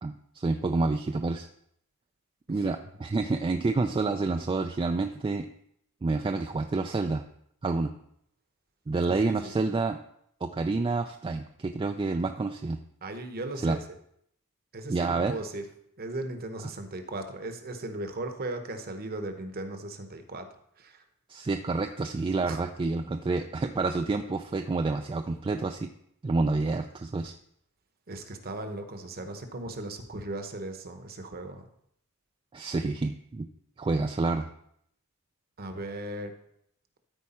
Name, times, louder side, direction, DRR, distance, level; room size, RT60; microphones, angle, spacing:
voice 1, 0.0-1.5 2.5-5.5 6.0-7.2 7.6-7.9 8.9-10.0 10.4-12.8 13.6-13.8 14.9-15.4 21.3-25.9 26.2-27.3 32.5-33.5 33.8-34.5, right 3 dB, 25° right, 5 dB, 0.3 m, -28 dB
voice 2, 9.2-9.6 13.0-13.8 14.7-15.6 16.0-20.5 20.8-21.0 22.5-22.6 28.1-31.6 35.6-36.3, right 2 dB, 45° right, 7 dB, 0.9 m, -37 dB
13.0 x 4.7 x 4.2 m, 0.72 s
head